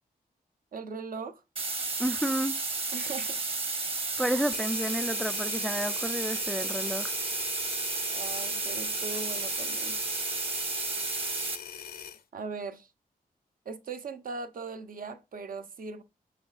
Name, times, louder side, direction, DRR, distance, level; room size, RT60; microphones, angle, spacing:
voice 1, 0.7-1.4 2.9-3.4 8.1-10.0 12.3-12.9 13.6-16.0, right 4 dB, 65° right, 0.8 m, -39 dB
sound 1, 1.6-11.6, right 3 dB, 40° right, 1.2 m, -32 dB
voice 2, 2.0-2.5 4.2-7.1, equal, ahead, 0.3 m, -31 dB
sound 2, 4.5-12.2, left 8 dB, 75° left, 0.7 m, -42 dB
6.9 x 6.0 x 2.4 m
wide cardioid pair, 150°, 16 cm